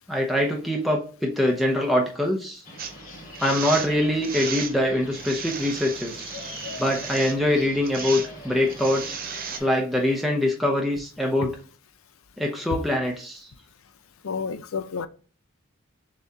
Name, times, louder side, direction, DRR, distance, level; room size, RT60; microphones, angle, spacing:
voice 1, 0.1-2.6 3.4-6.3 6.8-9.2 9.6-11.5 12.4-13.5, left 1 dB, ahead, 0.7 m, -24 dB
sound 1, 2.6-9.7, left 1 dB, 40° left, 1.6 m, -42 dB
sound 2, 2.8-2.9 3.4-3.9 4.2-4.7 5.1-7.4 7.8-8.3 8.7-9.6, right 6 dB, 45° right, 0.5 m, -34 dB
voice 2, 14.2-15.1, left 5 dB, 85° left, 0.5 m, -30 dB
6.8 x 2.4 x 2.7 m
head